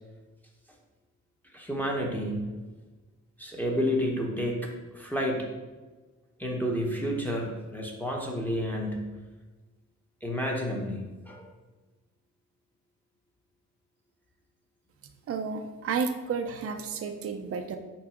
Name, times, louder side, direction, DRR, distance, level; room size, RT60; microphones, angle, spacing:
voice 1, 1.5-2.5 3.4-5.5 6.4-9.1 10.2-11.5, equal, 5° left, -1 dB, 0.9 m, -30 dB
voice 2, 15.3-17.8, right 5 dB, 50° right, 6 dB, 0.5 m, -31 dB
5.8 x 3.9 x 5.0 m, 1.2 s
wide cardioid pair, 150°, 30 cm